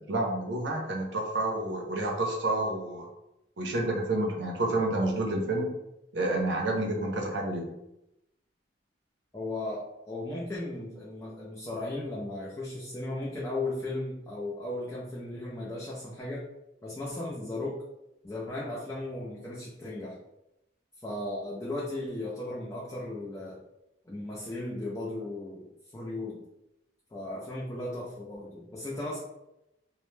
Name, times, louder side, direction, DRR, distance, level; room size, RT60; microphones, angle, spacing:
voice 1, 0.0-3.1 3.6-5.7 6.1-7.7, right 2 dB, 65° right, 0 dB, 0.5 m, -29 dB
voice 2, 9.3-16.5 16.8-17.8 18.2-20.2 21.0-23.6 24.1-26.4 27.1-29.2, left 2 dB, 15° left, -6 dB, 0.3 m, -36 dB
2.1 x 2.0 x 3.0 m, 0.88 s
head